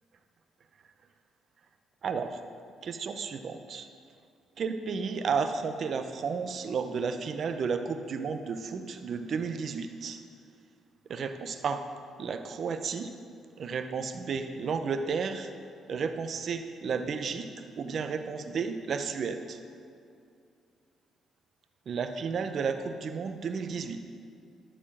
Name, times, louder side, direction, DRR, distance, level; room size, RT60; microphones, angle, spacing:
voice 1, 2.0-2.4 2.8-3.9 4.6-10.2 11.1-11.8 12.2-13.1 13.6-15.5 15.9-17.5 17.8-19.6 21.9-24.0, right 5 dB, 55° right, 8 dB, 0.7 m, -32 dB
12.5 x 4.4 x 7.3 m, 2.4 s
cardioid pair, 90°, 0 cm